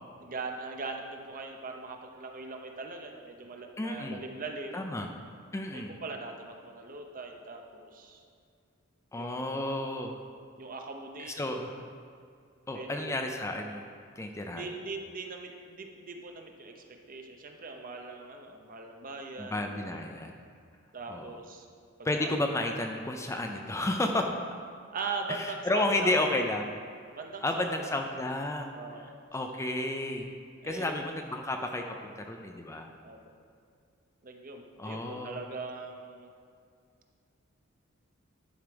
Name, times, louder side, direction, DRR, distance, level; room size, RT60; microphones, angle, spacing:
voice 1, 0.2-4.9 5.7-8.2 9.1-9.6 10.6-11.7 12.7-13.3 14.5-19.7 20.9-21.7 22.2-22.3 24.9-26.3 27.1-27.9 28.7-29.1 30.6-31.0 33.0-33.2 34.2-36.3, right 3 dB, 40° right, 3 dB, 0.8 m, -40 dB
voice 2, 3.8-4.2 4.7-5.1 5.5-5.9 9.1-10.2 11.2-11.9 12.7-13.8 14.2-14.7 19.4-20.3 21.1-21.3 22.0-24.3 25.3-26.7 27.4-28.8 29.3-30.3 30.6-32.9 34.8-35.4, left 1 dB, 15° left, 3 dB, 0.4 m, -32 dB
11.0 x 4.6 x 5.2 m, 2.3 s
head